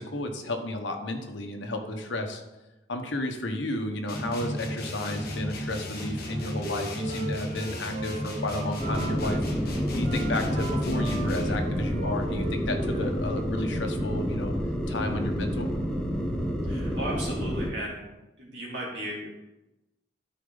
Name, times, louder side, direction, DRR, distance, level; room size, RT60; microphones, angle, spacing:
voice 1, 0.0-2.4 2.9-9.4 9.9-14.5 14.9-15.7, left 1 dB, 85° left, 4 dB, 1.2 m, -32 dB
sound 1, 4.1-11.7, equal, 50° left, 1.5 m, -33 dB
Wind instrument woodwind instrument, 6.1-9.4 10.0-13.5, right 3 dB, 35° right, 1.0 m, -40 dB
sound 2, 8.8-17.7, equal, 5° left, 0.9 m, -29 dB
voice 2, 16.7-18.1 18.4-19.3, right 1 dB, 70° right, -5 dB, 3.0 m, -35 dB
12.5 x 4.7 x 3.9 m, 1.0 s
head